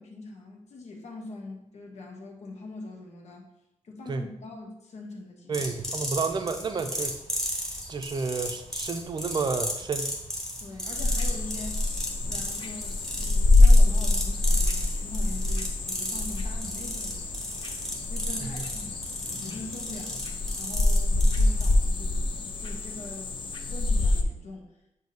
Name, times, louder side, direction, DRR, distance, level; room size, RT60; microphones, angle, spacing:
voice 1, 0.0-3.5 3.8-5.7 10.6-17.4 18.1-19.0 19.4-20.2 20.5-22.3 22.6-23.3 23.6-24.7, left 2 dB, 70° left, 1 dB, 1.2 m, -42 dB
sound 1, 5.5-21.7, equal, 5° left, 1.2 m, -35 dB
voice 2, 5.5-7.2 7.9-10.1 18.4-18.6, right 4 dB, 40° right, 7 dB, 0.5 m, -30 dB
sound 2, 11.0-24.2, left 2 dB, 45° left, 0.5 m, -25 dB
7.6 x 2.7 x 5.3 m, 0.87 s
wide cardioid pair, 175°, 12 cm